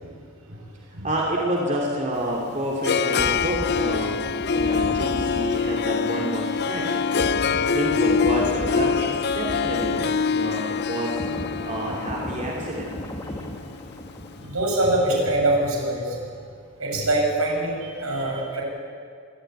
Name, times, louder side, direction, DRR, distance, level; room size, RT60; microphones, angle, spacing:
voice 1, 1.0-4.2 4.5-7.1 7.7-12.9, right 1 dB, 35° right, -2 dB, 2.8 m, -29 dB
Harp, 2.2-14.3, left 5 dB, 50° left, 0.5 m, -25 dB
sound 1, 3.1-10.6 10.9-14.6 14.9-15.1, equal, 15° left, 1.9 m, -36 dB
voice 2, 14.4-16.2 16.8-18.6, right 1 dB, 75° right, -1 dB, 7.4 m, -24 dB
26.0 x 13.5 x 9.5 m, 2.1 s
head